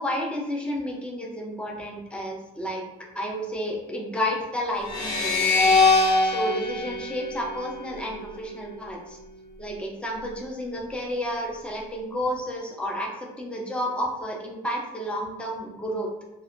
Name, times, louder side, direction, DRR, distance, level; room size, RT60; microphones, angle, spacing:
voice 1, 0.0-2.8 3.1-9.2 9.6-16.1, equal, 5° left, -1 dB, 0.6 m, -31 dB
sound 1, 4.9-8.1, left 3 dB, 60° left, 1.0 m, -22 dB
2.2 x 2.0 x 3.7 m, 0.94 s
cardioid pair, 110°, 17 cm